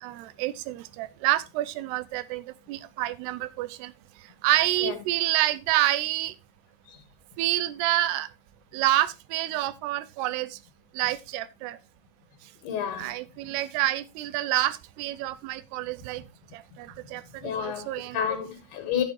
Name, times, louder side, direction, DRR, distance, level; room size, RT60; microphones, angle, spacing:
voice 1, 0.0-3.9 4.4-6.3 7.4-8.3 8.7-10.6 10.9-11.8 13.0-16.2 16.5-18.3, right 15 dB, 80° right, 2.6 m, -28 dB
voice 2, 12.6-13.1 17.4-17.9 18.1-19.0, left 8 dB, 75° left, 3.6 m, -29 dB
12.0 x 8.5 x 3.2 m
omnidirectional pair, 4.8 m